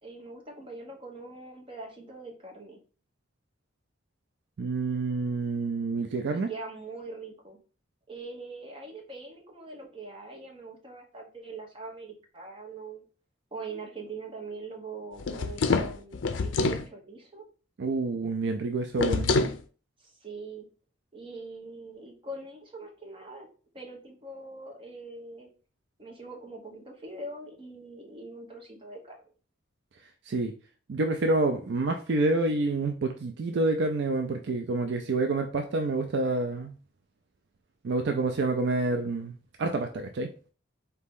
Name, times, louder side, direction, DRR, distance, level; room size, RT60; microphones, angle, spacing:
voice 1, 0.0-2.8 6.3-7.6 8.1-13.0 13.5-17.4 20.0-20.7 21.1-23.5 23.7-25.5 26.0-29.3, right 3 dB, 25° right, 1.1 m, -42 dB
voice 2, 4.6-6.5 17.8-19.3 30.3-30.5 30.9-36.8 37.8-39.3 39.6-40.3, right 2 dB, 60° right, 0.4 m, -28 dB
sound 1, 15.2-16.9 19.0-19.6, left 3 dB, 65° left, 0.5 m, -26 dB
4.1 x 2.8 x 3.6 m
head